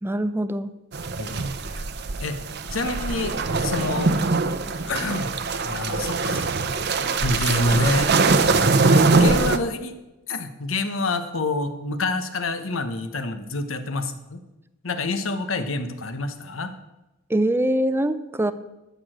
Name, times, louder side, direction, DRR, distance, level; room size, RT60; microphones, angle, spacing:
voice 1, 0.0-0.7 17.3-18.5, right 1 dB, 10° right, 13 dB, 0.5 m, -23 dB
sound 1, 0.9-9.6, right 3 dB, 55° right, 0.7 m, -22 dB
voice 2, 1.2-1.8 2.2-2.4 2.7-4.1 4.7-5.3 5.6-6.5 7.2-8.1 9.1-9.9 10.3-14.4 14.8-16.7, left 2 dB, 85° left, 9 dB, 1.1 m, -27 dB
13.0 x 6.9 x 6.3 m, 1.0 s
head